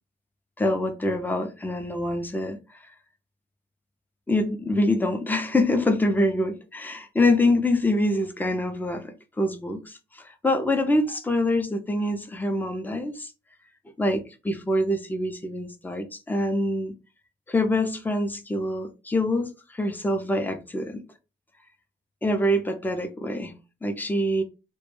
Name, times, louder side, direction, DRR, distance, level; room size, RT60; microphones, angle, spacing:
voice 1, 0.6-2.6 4.3-13.3 14.0-16.9 17.5-21.0 22.2-23.5 23.8-24.4, left 1 dB, 10° left, 0.4 m, -25 dB
2.2 x 2.1 x 3.0 m
wide cardioid pair, 125°, 20 cm